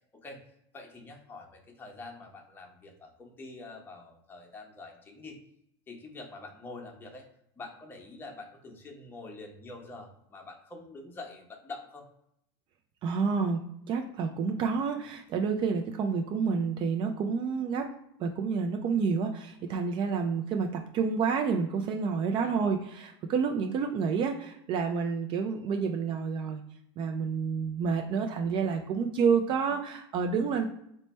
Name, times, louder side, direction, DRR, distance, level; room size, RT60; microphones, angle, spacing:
voice 1, 0.7-5.4 5.9-7.3 7.6-12.0 22.4-22.7, left 3 dB, 15° left, 2 dB, 0.7 m, -46 dB
voice 2, 13.0-13.6 13.9-17.9 18.2-26.6 27.0-30.6, right 5 dB, 35° right, 4 dB, 0.4 m, -29 dB
3.1 x 2.1 x 4.1 m, 0.74 s
supercardioid pair, 130°, 14 cm